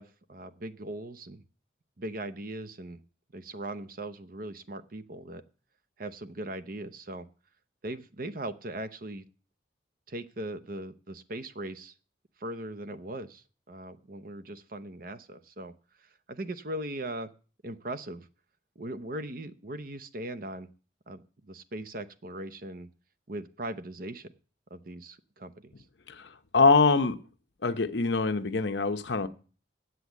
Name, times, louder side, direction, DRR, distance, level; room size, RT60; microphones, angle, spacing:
voice 1, 0.0-1.4 2.0-3.0 3.3-5.4 6.0-7.3 7.8-9.2 10.1-11.9 12.4-15.7 16.0-17.3 17.6-18.3 18.8-20.7 21.1-22.9 23.3-24.3 24.7-25.7, right 1 dB, 50° right, 0.7 m, -39 dB
voice 2, 26.1-27.2 27.6-29.3, left 4 dB, 70° left, 0.8 m, -24 dB
8.0 x 7.7 x 8.3 m
head